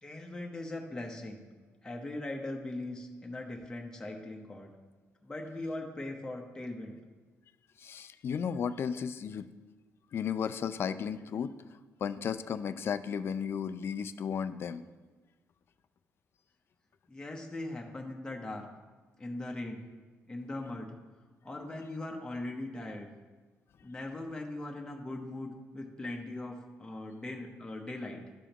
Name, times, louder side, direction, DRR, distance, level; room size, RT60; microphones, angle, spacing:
voice 1, 0.0-1.4 1.8-4.7 5.2-7.0 17.1-18.7 19.2-19.8 20.3-20.9 21.4-23.1 23.8-28.2, left 2 dB, 15° left, 0 dB, 0.9 m, -40 dB
voice 2, 7.8-9.5 10.1-11.6 12.0-14.8, left 7 dB, 50° left, 13 dB, 0.4 m, -34 dB
12.0 x 4.9 x 2.9 m, 1.3 s
cardioid pair, 90°, 5 cm